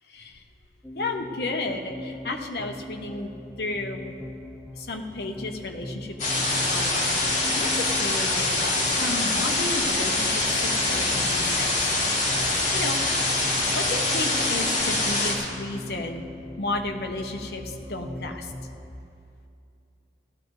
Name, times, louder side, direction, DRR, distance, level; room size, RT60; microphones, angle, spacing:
sound 1, 0.8-18.9, left 1 dB, ahead, 0.5 m, -40 dB
voice 1, 0.9-3.3 3.6-4.1 4.8-11.9 12.4-13.2 13.7-16.2 16.6-18.5, left 2 dB, 60° left, 3 dB, 0.9 m, -33 dB
sound 2, 6.2-15.3, left 2 dB, 40° left, 2.6 m, -24 dB
17.0 x 13.5 x 3.2 m, 2.5 s
head